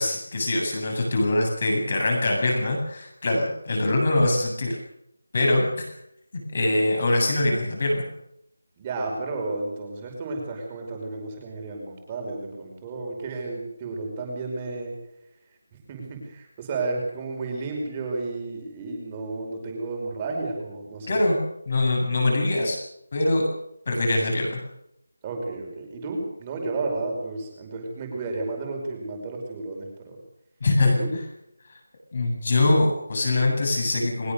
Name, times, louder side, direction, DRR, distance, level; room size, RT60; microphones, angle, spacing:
voice 1, 0.0-4.8 5.3-5.9 6.5-8.1 21.1-21.4 21.7-22.8 23.1-23.5 23.9-24.6 30.6-31.2 32.1-34.3, left 2 dB, 30° left, 1 dB, 8.0 m, -23 dB
voice 2, 8.8-15.0 15.7-21.2 25.2-30.2 30.8-31.1, right 3 dB, 10° right, 1 dB, 5.2 m, -32 dB
22.0 x 21.5 x 6.7 m, 0.78 s
figure-of-eight pair, 180°, 0 cm